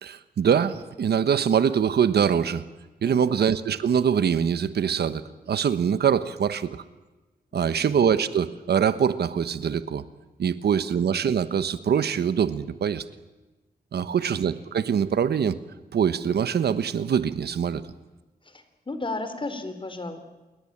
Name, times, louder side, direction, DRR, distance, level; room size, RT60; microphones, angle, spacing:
voice 1, 0.0-2.6 3.0-6.8 7.5-10.0 10.4-13.0 13.9-15.6 15.9-17.8, right 7 dB, 85° right, 13 dB, 1.3 m, -23 dB
voice 2, 3.0-3.4 7.6-7.9 14.0-14.3 18.5-20.2, left 2 dB, 30° left, 9 dB, 3.6 m, -35 dB
28.0 x 22.0 x 8.8 m, 1.1 s
wide cardioid pair, 95°, 16 cm